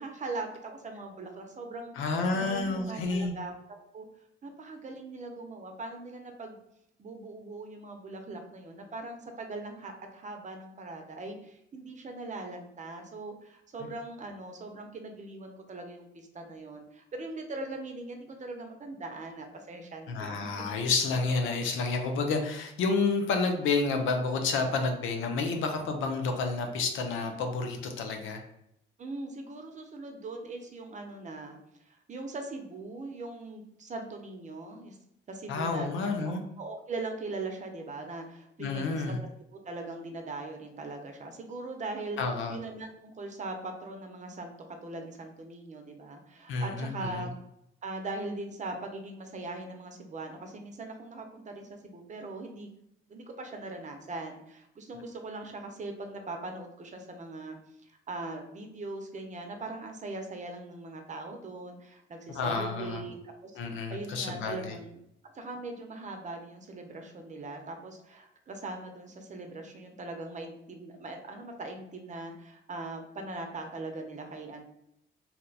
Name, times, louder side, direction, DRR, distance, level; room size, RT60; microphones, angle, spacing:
voice 1, 0.0-2.0 2.3-3.5 3.9-4.1 4.4-6.6 7.0-20.5 29.0-31.6 31.8-35.0 35.3-39.0 39.5-42.2 42.5-44.5 44.8-47.3 47.8-52.7 53.1-57.6 57.8-63.2 63.4-65.0 65.3-74.6, right 2 dB, 40° right, 4 dB, 0.7 m, -40 dB
voice 2, 2.0-3.3 20.1-28.4 35.5-36.4 38.6-39.2 42.2-42.6 46.5-47.2 62.3-63.0 63.6-64.8, left 4 dB, 80° left, 4 dB, 0.6 m, -30 dB
2.8 x 2.2 x 4.0 m, 0.78 s
cardioid pair, 90°, 20 cm